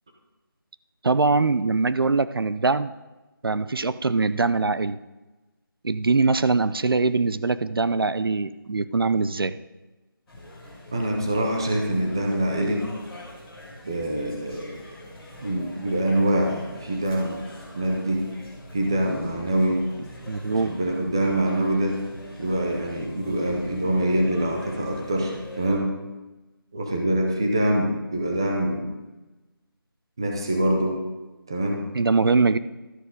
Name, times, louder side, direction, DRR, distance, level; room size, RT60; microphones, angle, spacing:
voice 1, 1.0-2.9 3.4-5.0 5.8-9.6 20.3-20.7 31.9-32.6, right 3 dB, 75° right, 15 dB, 0.5 m, -22 dB
sound 1, 10.3-25.7, left 1 dB, 5° left, 1.7 m, -44 dB
voice 2, 10.9-12.9 13.8-14.7 15.4-17.4 17.7-18.3 18.7-19.8 20.5-22.0 22.4-25.9 26.7-28.9 30.2-31.0 31.5-31.8, right 1 dB, 10° right, 1 dB, 0.6 m, -24 dB
12.5 x 11.0 x 3.9 m, 1.1 s
figure-of-eight pair, 175°, 12 cm